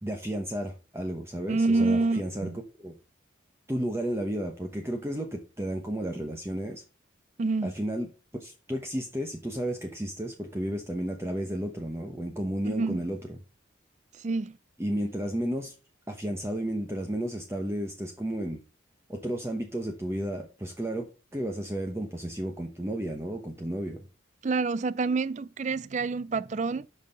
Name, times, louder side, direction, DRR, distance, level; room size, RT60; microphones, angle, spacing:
voice 1, 0.0-2.9 3.7-6.8 7.6-8.1 8.4-13.4 14.8-15.7 16.1-18.6 19.1-24.0, right 1 dB, 15° right, 0.9 m, -33 dB
voice 2, 1.5-2.6 7.4-7.7 12.6-13.0 14.2-14.6 24.4-26.9, right 3 dB, 35° right, 0.4 m, -27 dB
6.6 x 5.5 x 6.5 m
head